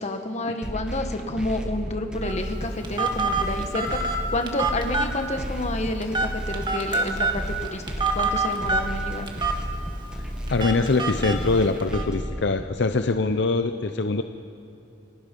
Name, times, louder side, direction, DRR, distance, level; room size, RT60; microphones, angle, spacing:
voice 1, 0.0-7.8 8.1-9.3, left 1 dB, 35° left, 5 dB, 1.4 m, -29 dB
sound 1, 0.6-12.6, equal, 5° right, 1.4 m, -33 dB
Telephone, 2.2-12.0, right 3 dB, 25° right, 1.7 m, -28 dB
voice 2, 10.5-14.2, left 3 dB, 65° left, 8 dB, 0.7 m, -23 dB
29.0 x 18.5 x 5.4 m, 2.8 s
head